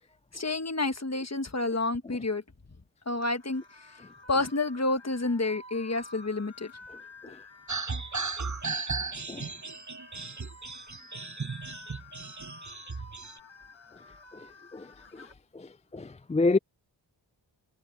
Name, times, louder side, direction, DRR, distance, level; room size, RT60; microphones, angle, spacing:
voice 1, 0.3-2.4 3.1-4.0 4.3-6.7, left 2 dB, 35° left, 1.4 m, -29 dB
sound 1, 3.2-15.3, left 3 dB, 80° left, 1.8 m, -51 dB
sound 2, 7.7-13.4, right 4 dB, 40° right, 1.2 m, -36 dB
voice 2, 14.7-15.3 15.5-16.6, left 3 dB, 15° left, 0.3 m, -29 dB
wide cardioid pair, 45°, 46 cm